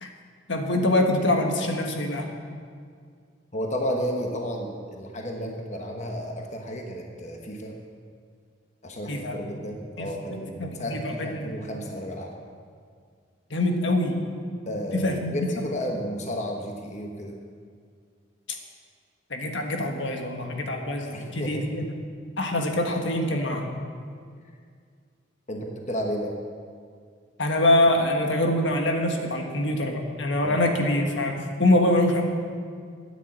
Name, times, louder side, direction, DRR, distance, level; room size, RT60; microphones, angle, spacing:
voice 1, 0.5-2.3 9.1-9.4 10.0-11.5 13.5-14.2 14.9-15.5 19.3-21.9 22.4-23.7 27.4-32.2, left 1 dB, 75° left, 3 dB, 1.6 m, -24 dB
voice 2, 3.5-7.8 8.8-12.3 14.7-17.4 21.1-21.7 25.5-26.4 30.4-30.6, equal, 40° left, 2 dB, 1.2 m, -32 dB
13.0 x 9.8 x 7.5 m, 2.1 s
head